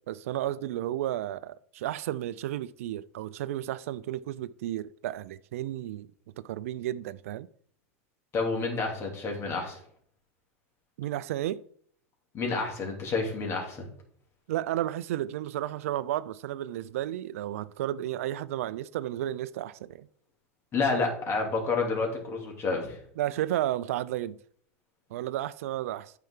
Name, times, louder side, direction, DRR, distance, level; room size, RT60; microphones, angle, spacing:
voice 1, 0.1-6.1 6.4-7.5 11.0-11.6 14.5-20.1 23.2-24.4 25.1-26.1, right 13 dB, 80° right, 0.4 m, -32 dB
voice 2, 8.3-9.8 12.3-13.8 20.7-23.0, left 4 dB, 35° left, 2.9 m, -29 dB
9.1 x 5.6 x 3.8 m
hypercardioid pair, 105°, 8 cm